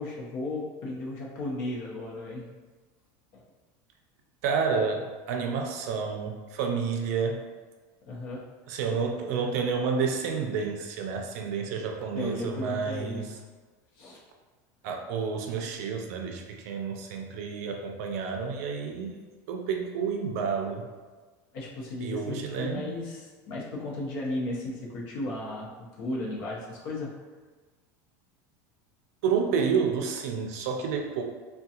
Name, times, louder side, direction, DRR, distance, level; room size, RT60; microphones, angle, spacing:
voice 1, 0.0-2.5 3.3-3.4 8.1-8.4 12.1-13.3 14.0-14.2 21.5-25.7 26.0-27.1, left 2 dB, 50° left, -3 dB, 0.7 m, -35 dB
voice 2, 4.4-7.4 8.7-13.3 14.8-19.2 19.5-20.9 22.0-22.8 29.2-31.2, right 5 dB, 65° right, 2 dB, 0.5 m, -30 dB
3.5 x 2.2 x 2.8 m, 1.3 s
supercardioid pair, 165°, 9 cm